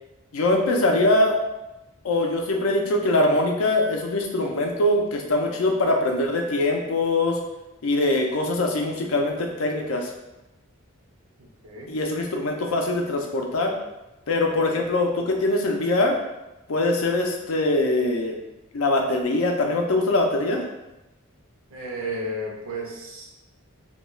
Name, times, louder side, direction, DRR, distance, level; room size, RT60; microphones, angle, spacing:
voice 1, 0.3-1.4 2.0-7.4 7.8-10.1 11.9-13.7 14.3-16.2 16.7-18.3 18.7-20.6, left 2 dB, 85° left, 2 dB, 0.5 m, -22 dB
voice 2, 11.4-11.9 21.7-23.3, right 1 dB, 80° right, -2 dB, 0.6 m, -33 dB
2.3 x 2.2 x 3.0 m, 0.98 s
head